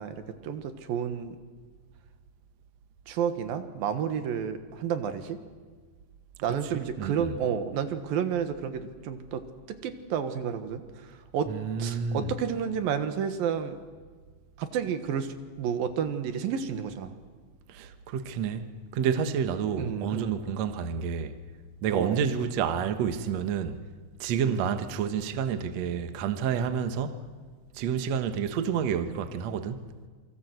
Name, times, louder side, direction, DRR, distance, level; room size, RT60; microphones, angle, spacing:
voice 1, 0.0-1.3 3.1-5.4 6.4-11.5 11.8-13.8 14.6-17.1 19.8-20.4 21.9-22.2 24.4-24.7, right 8 dB, 80° right, 3.2 m, -31 dB
voice 2, 6.5-7.3 11.5-12.3 17.7-18.7 18.9-21.4 21.8-23.8 24.2-27.2 27.7-29.9, right 7 dB, 60° right, 2.2 m, -29 dB
27.5 x 24.0 x 8.1 m
omnidirectional pair, 4.1 m